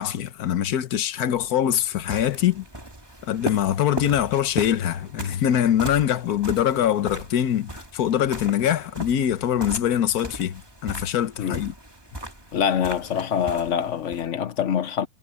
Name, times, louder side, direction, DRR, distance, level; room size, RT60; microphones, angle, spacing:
voice 1, 0.0-2.6 3.2-11.7, left 10 dB, 80° left, 1.5 m, -23 dB
sound 1, 1.3-14.3, right 1 dB, 15° right, 2.7 m, -38 dB
voice 2, 12.5-15.1, left 8 dB, 55° left, 1.0 m, -25 dB
omnidirectional pair, 1.6 m